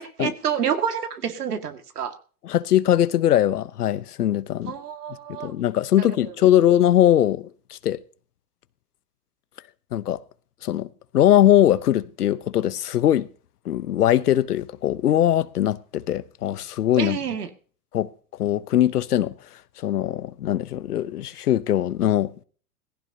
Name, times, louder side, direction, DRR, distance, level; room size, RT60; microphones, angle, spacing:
voice 1, 0.0-2.1 4.7-5.5 6.0-6.1 17.0-17.5, right 8 dB, 85° right, 2.1 m, -28 dB
voice 2, 2.4-4.7 5.3-8.0 9.9-10.2 10.6-13.3 13.6-17.2 17.9-18.1 18.4-19.3 19.8-22.4, left 12 dB, 80° left, 0.9 m, -21 dB
18.5 x 15.5 x 2.8 m
hypercardioid pair, 110°, 45 cm